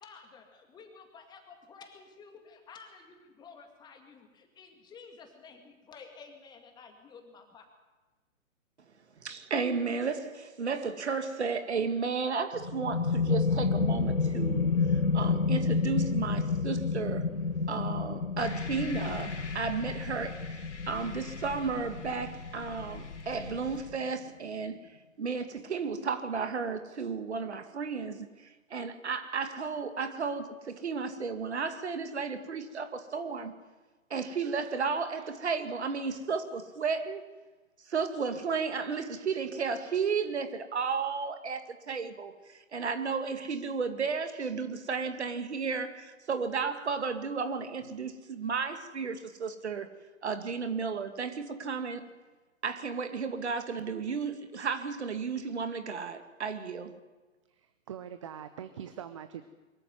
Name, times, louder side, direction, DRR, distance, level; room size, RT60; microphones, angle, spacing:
voice 1, 0.0-7.7, left 5 dB, 10° left, 2.1 m, -52 dB
voice 2, 9.2-14.7 15.1-17.3 17.7-24.8 25.2-28.3 28.7-33.5 34.1-37.2 37.9-49.9 50.2-52.1 52.6-56.9, right 5 dB, 55° right, 2.3 m, -33 dB
sound 1, 12.5-23.9, left 4 dB, 85° left, 1.3 m, -30 dB
sound 2, 18.4-23.9, left 4 dB, 55° left, 3.7 m, -43 dB
voice 3, 57.5-59.4, right 9 dB, 25° right, 0.7 m, -43 dB
23.0 x 14.0 x 9.4 m
figure-of-eight pair, 130°, 41 cm